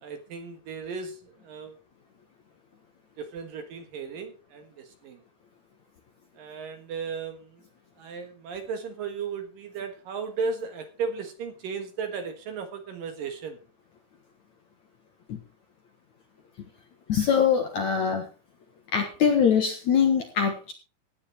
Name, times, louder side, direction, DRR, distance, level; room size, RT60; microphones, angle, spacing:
voice 1, 0.0-1.8 3.2-5.2 6.4-7.6 8.0-13.6, right 5 dB, 60° right, 8 dB, 2.8 m, -35 dB
voice 2, 17.1-18.3 18.9-20.7, left 7 dB, 60° left, 4 dB, 2.1 m, -23 dB
16.5 x 9.7 x 4.4 m, 0.34 s
omnidirectional pair, 5.1 m